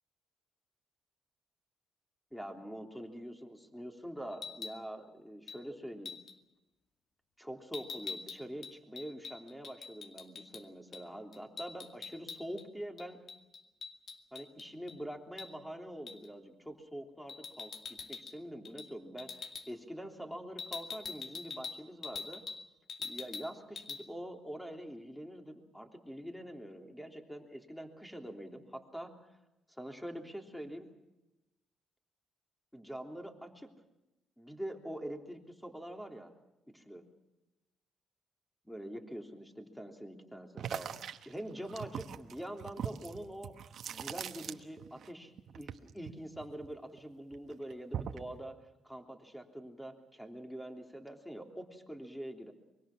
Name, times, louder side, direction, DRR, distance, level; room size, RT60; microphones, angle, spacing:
voice 1, 2.3-6.2 7.4-13.2 14.3-22.4 23.0-29.2 29.7-30.9 32.7-33.7 34.4-36.3 36.7-37.0 38.6-40.9 41.2-48.6 48.8-52.5, equal, 5° left, 3 dB, 3.3 m, -45 dB
sound 1, 4.3-4.8 5.5-5.6 6.0-6.3 7.7-10.6 10.9-11.0 11.3-12.6 13.0-15.0 15.4-15.5 16.1-16.3 17.3-18.4 18.6-18.9 19.2-19.7 20.6-22.6 22.9-23.5 23.8-24.0, left 5 dB, 50° left, 2.2 m, -44 dB
sound 2, 40.6-45.1 45.3-47.0 47.3-48.3, right 9 dB, 65° right, 1.3 m, -41 dB
24.5 x 23.0 x 6.1 m, 0.97 s
cardioid pair, 90°, 0 cm